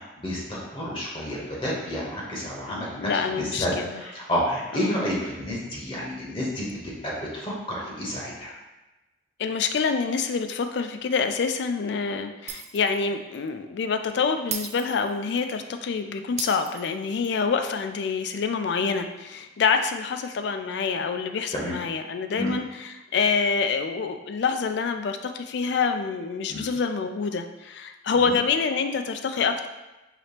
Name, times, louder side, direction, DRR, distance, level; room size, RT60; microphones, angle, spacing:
voice 1, 0.0-3.1 3.4-6.7 7.0-8.5 21.5-21.8 22.4-22.5 26.5-26.7 28.1-28.4, equal, 30° left, -4 dB, 0.9 m, -30 dB
voice 2, 2.7-4.0 4.7-5.0 9.4-29.7, left 5 dB, 65° left, 8 dB, 0.4 m, -26 dB
Shatter, 12.5-13.0 13.3-13.5 14.5-15.5 16.4-17.4, right 7 dB, 40° right, 0.3 m, -36 dB
4.9 x 3.0 x 2.8 m, 1.0 s
head